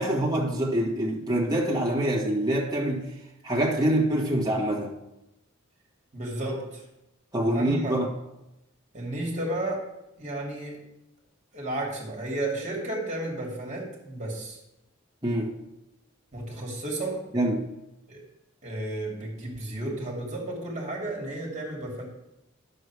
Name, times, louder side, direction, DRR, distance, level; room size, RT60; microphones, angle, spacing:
voice 1, 0.0-3.1 3.4-4.9 7.3-8.1 15.2-15.5 17.3-17.7, right 1 dB, 20° right, -2 dB, 1.9 m, -25 dB
voice 2, 6.1-6.8 7.5-8.0 8.9-9.8 10.2-10.8 11.5-14.6 16.3-17.2 18.1-18.2 18.6-22.0, right 1 dB, 35° right, -2 dB, 2.7 m, -32 dB
10.5 x 6.9 x 4.8 m, 0.89 s
head